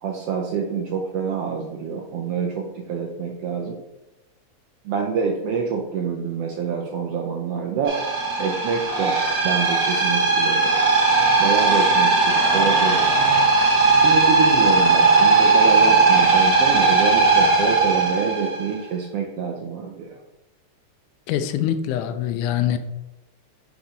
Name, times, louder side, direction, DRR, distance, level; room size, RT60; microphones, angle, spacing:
voice 1, 0.0-3.8 4.8-8.0 8.4-9.2 9.4-10.7 11.4-13.2 13.9-20.2, right 6 dB, 80° right, 1 dB, 1.4 m, -26 dB
sound 1, 7.9-18.7, right 3 dB, 50° right, 1.1 m, -18 dB
voice 2, 21.3-22.8, left 10 dB, 85° left, 10 dB, 2.0 m, -24 dB
5.8 x 5.5 x 3.7 m, 0.99 s
omnidirectional pair, 3.4 m